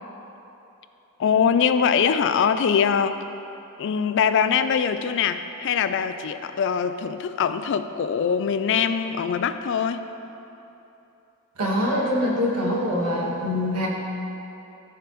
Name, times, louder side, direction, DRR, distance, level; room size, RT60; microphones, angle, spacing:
voice 1, 1.2-3.2 3.8-10.0, left 7 dB, 55° left, 11 dB, 0.3 m, -22 dB
voice 2, 11.6-13.9, left 1 dB, 85° right, -2 dB, 1.4 m, -24 dB
14.0 x 5.0 x 3.1 m, 3.0 s
head